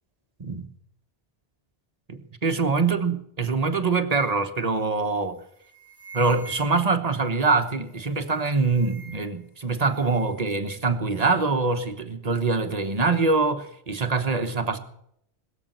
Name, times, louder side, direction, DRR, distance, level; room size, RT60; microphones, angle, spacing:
voice 1, 2.1-5.4 6.1-14.8, right 4 dB, 35° right, 1.3 m, -24 dB
sound 1, 5.0-5.2 5.5-7.1 8.0-9.4 9.7-10.5, right 4 dB, 55° left, 5.6 m, -46 dB
20.5 x 7.5 x 7.9 m
omnidirectional pair, 1.1 m